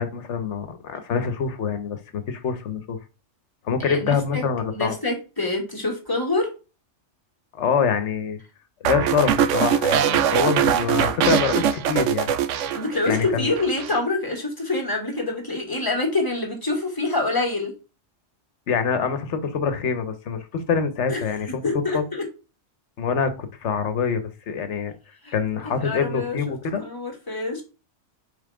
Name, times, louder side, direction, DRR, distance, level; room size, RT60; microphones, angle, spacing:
voice 1, 0.0-3.0 3.6-5.0 7.5-8.4 8.8-12.3 13.1-13.5 18.7-21.6 21.9-22.0 23.0-24.9 25.3-26.8, left 6 dB, 70° left, 10 dB, 1.2 m, -25 dB
voice 2, 3.8-4.4 4.7-6.5 12.7-17.7 21.1-21.2 21.6-22.2 25.2-25.3 25.8-26.4 26.8-27.6, left 2 dB, 15° left, 1 dB, 2.0 m, -26 dB
sound 1, 8.8-13.3 13.6-14.0, right 9 dB, 75° right, 0.9 m, -22 dB
5.5 x 3.7 x 4.9 m, 0.32 s
omnidirectional pair, 1.3 m